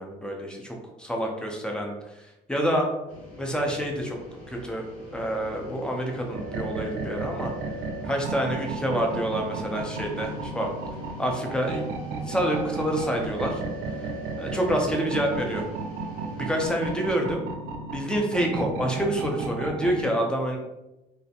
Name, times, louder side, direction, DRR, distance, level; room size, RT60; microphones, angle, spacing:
voice 1, 0.0-2.9 3.4-4.2 4.5-4.8 5.1-7.5 8.0-10.7 11.2-13.6 14.4-15.6 16.4-17.4 17.9-20.6, right 1 dB, 5° left, 1 dB, 0.5 m, -27 dB
sound 1, 3.1-17.1, left 1 dB, 85° left, 1.2 m, -44 dB
sound 2, 6.3-20.0, right 3 dB, 90° right, 0.4 m, -34 dB
2.4 x 2.1 x 2.7 m, 0.95 s
cardioid pair, 110°, 17 cm